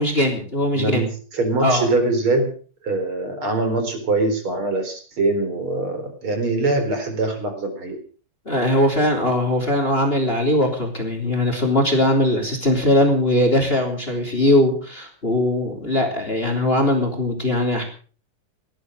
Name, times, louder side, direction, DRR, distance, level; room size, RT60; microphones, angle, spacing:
voice 1, 0.0-1.0 1.6-1.8 8.4-17.8, left 1 dB, 15° left, 5 dB, 3.3 m, -20 dB
voice 2, 0.7-2.5 2.8-8.0, right 2 dB, 40° right, 6 dB, 4.9 m, -23 dB
18.0 x 12.5 x 6.4 m, 0.42 s
omnidirectional pair, 3.7 m